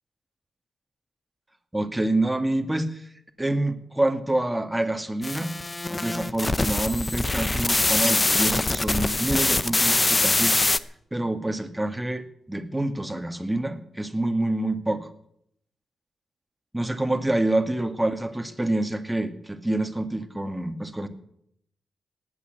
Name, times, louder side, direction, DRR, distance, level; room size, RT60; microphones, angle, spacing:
voice 1, 1.7-3.1 3.4-5.5 5.9-10.6 11.1-15.1 16.7-21.1, right 1 dB, 10° right, 7 dB, 2.2 m, -27 dB
sound 1, 5.2-10.8, left 2 dB, 25° left, 0.9 m, -23 dB
18.5 x 8.7 x 8.3 m, 0.73 s
cardioid pair, 60°, 0 cm